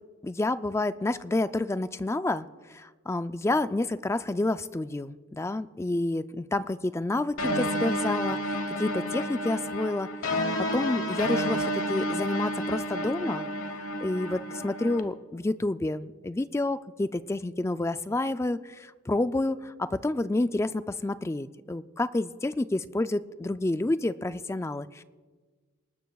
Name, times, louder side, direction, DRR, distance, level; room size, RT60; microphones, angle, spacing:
voice 1, 0.2-10.1 10.7-13.5 13.8-25.0, left 2 dB, 15° left, 13 dB, 0.3 m, -29 dB
sound 1, 7.4-15.0, equal, 75° left, 1.2 m, -30 dB
27.0 x 12.5 x 2.3 m, 1.5 s
head